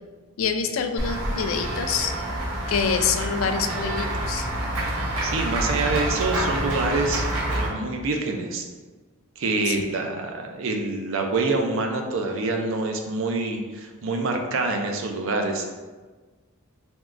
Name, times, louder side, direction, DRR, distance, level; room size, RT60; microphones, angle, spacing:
voice 1, 0.4-2.1 2.7-4.5 9.7-9.8, left 6 dB, 65° left, 7 dB, 0.3 m, -26 dB
Run / Walk footsteps / Bell, 1.0-7.7, right 1 dB, 85° right, 0.9 m, -27 dB
voice 2, 5.2-8.7 9.4-15.7, right 3 dB, 65° right, 3 dB, 0.4 m, -26 dB
3.5 x 3.0 x 2.5 m, 1.3 s
head